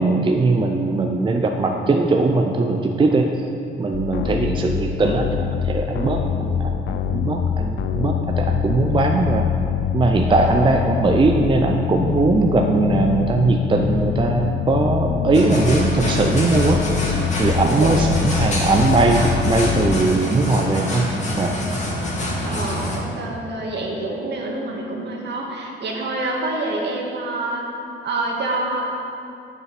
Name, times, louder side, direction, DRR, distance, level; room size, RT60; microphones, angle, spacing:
voice 1, 0.0-3.3 3.8-9.5 9.9-16.8 17.4-21.1 21.4-21.5, right 3 dB, 25° right, 3 dB, 0.5 m, -20 dB
sound 1, 3.9-20.0, left 7 dB, 70° left, 0.5 m, -24 dB
voice 2, 10.3-10.6 17.7-17.9 22.4-27.6 28.0-29.0, right 2 dB, 60° right, -1 dB, 1.7 m, -27 dB
sound 2, 15.3-23.0, left 1 dB, 35° left, 2.0 m, -26 dB
7.3 x 6.5 x 5.9 m, 2.5 s
cardioid pair, 90°, 20 cm